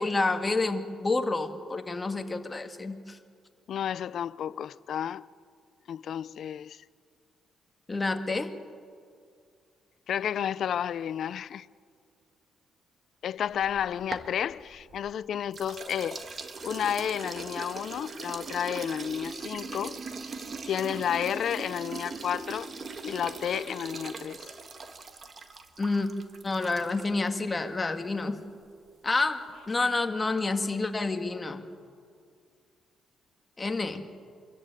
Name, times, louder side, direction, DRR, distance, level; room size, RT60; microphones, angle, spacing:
voice 1, 0.0-3.2 7.9-8.5 25.8-26.1 26.4-28.4 29.0-31.6 33.6-34.0, left 3 dB, 20° left, 1.8 m, -29 dB
voice 2, 3.7-5.3 5.9-6.8 10.1-11.7 13.2-16.3 16.6-20.0 20.7-22.7 23.0-24.4, left 9 dB, 65° left, 0.5 m, -31 dB
sound 1, 13.5-15.1 15.5-27.3, right 4 dB, 40° right, 1.6 m, -40 dB
25.0 x 14.0 x 9.1 m
cardioid pair, 90°, 0 cm